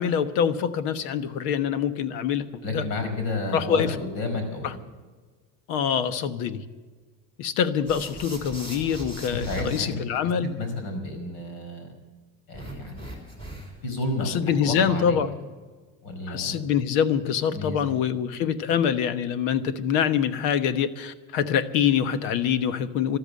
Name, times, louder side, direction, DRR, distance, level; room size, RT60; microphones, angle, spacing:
voice 1, 0.0-2.5 2.7-2.8 3.5-3.9 4.6-4.7 5.7-6.6 7.4-10.5 14.2-15.3 16.3-23.2, left 8 dB, 85° left, 12 dB, 1.2 m, -25 dB
voice 2, 2.6-4.6 9.5-11.9 12.5-13.0 13.8-15.2 16.0-16.6 17.5-17.8 18.7-18.8, left 2 dB, 65° left, 6 dB, 5.1 m, -31 dB
sound 1, 7.9-9.8 12.5-13.9, right 1 dB, 15° left, 3.3 m, -39 dB
13.5 x 13.0 x 7.7 m, 1.4 s
cardioid pair, 175°, 39 cm